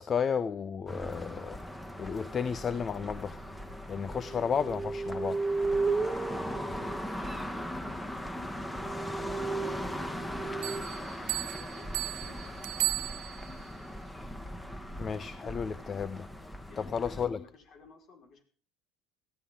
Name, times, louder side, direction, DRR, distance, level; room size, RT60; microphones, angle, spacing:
voice 1, 0.0-1.6 2.0-3.4 3.9-5.4 15.0-16.3 16.8-17.4, left 6 dB, 35° left, 0.8 m, -32 dB
sound 1, 0.9-17.3, equal, 10° left, 2.2 m, -39 dB
sound 2, 4.0-7.7 8.3-8.4 8.7-10.8, right 3 dB, 20° right, 1.8 m, -34 dB
voice 2, 6.0-13.1 16.7-18.4, left 4 dB, 55° left, 5.0 m, -54 dB
Bell, 10.6-13.7, right 21 dB, 75° right, 0.7 m, -35 dB
18.5 x 14.5 x 3.8 m
supercardioid pair, 80°, 0 cm